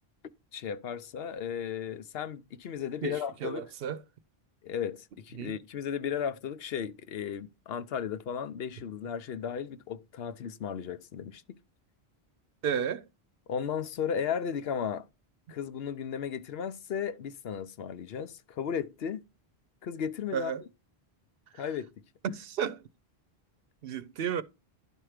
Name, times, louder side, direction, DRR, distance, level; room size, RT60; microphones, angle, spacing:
voice 1, 0.5-3.7 4.6-11.6 13.5-15.1 15.5-19.2 19.8-20.5 21.5-21.9, left 7 dB, 75° left, 0.9 m, -35 dB
voice 2, 3.0-4.0 5.4-5.5 12.6-13.0 20.3-20.6 22.2-22.8 23.8-24.4, right 8 dB, 70° right, 0.8 m, -32 dB
11.0 x 4.5 x 4.9 m
omnidirectional pair, 1.0 m